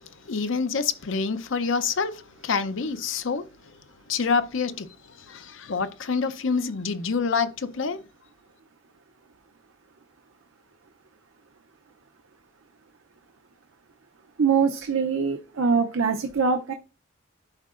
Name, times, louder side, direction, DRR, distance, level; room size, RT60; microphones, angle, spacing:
voice 1, 0.3-2.1 2.4-3.4 4.1-4.9 5.3-8.0, left 5 dB, 70° left, 0.6 m, -26 dB
voice 2, 14.4-16.7, right 5 dB, 80° right, 0.6 m, -23 dB
11.5 x 4.6 x 2.5 m
head